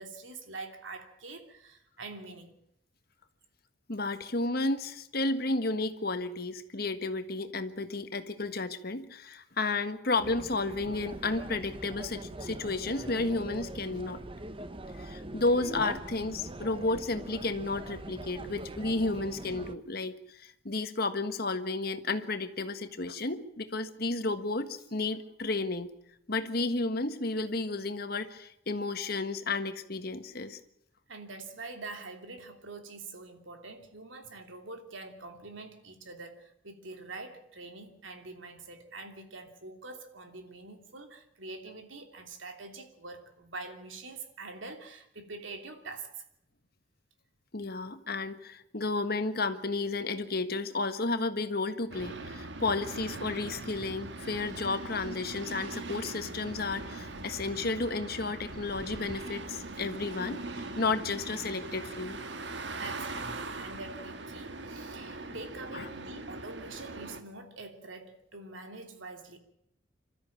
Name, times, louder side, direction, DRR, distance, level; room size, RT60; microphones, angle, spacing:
voice 1, 0.0-2.6 31.1-46.2 62.8-69.4, right 3 dB, 80° right, 5 dB, 3.0 m, -45 dB
voice 2, 3.9-14.2 14.9-25.9 26.3-30.6 47.5-62.2 65.7-65.9, left 3 dB, 50° left, 9 dB, 1.5 m, -32 dB
sound 1, 10.2-19.7, right 1 dB, 25° right, 0.9 m, -42 dB
sound 2, 51.9-67.2, right 2 dB, 60° right, 1.7 m, -41 dB
26.5 x 13.5 x 8.8 m, 0.77 s
head